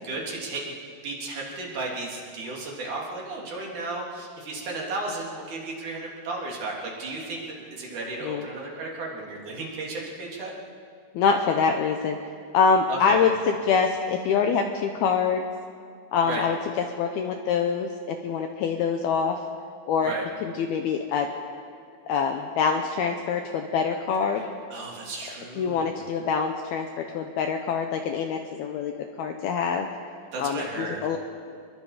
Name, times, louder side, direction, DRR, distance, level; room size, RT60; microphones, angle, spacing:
voice 1, 0.0-0.8 1.0-10.5 12.9-13.2 16.2-16.4 20.0-20.2 24.7-26.0 30.3-31.1, right 2 dB, 45° right, -2 dB, 4.4 m, -34 dB
voice 2, 11.1-12.2 12.5-15.5 16.1-16.6 17.0-19.4 19.9-20.1 20.4-21.3 22.1-24.5 25.6-28.9 29.2-29.9 30.4-31.2, left 6 dB, 75° left, 4 dB, 2.3 m, -25 dB
27.5 x 22.5 x 5.0 m, 2.3 s
omnidirectional pair, 5.5 m